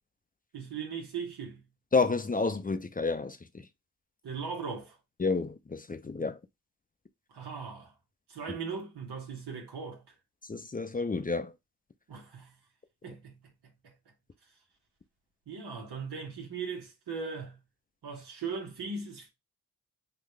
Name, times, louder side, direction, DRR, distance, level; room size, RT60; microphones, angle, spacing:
voice 1, 0.5-1.7 4.2-5.0 7.3-7.9 8.3-10.1 12.1-12.5 13.0-13.9 15.5-17.6 18.0-19.3, right 5 dB, 85° right, 1.5 m, -39 dB
voice 2, 1.9-3.7 5.2-6.4 10.5-11.5, left 4 dB, 20° left, 0.6 m, -30 dB
3.9 x 2.5 x 3.2 m
cardioid pair, 55°, 38 cm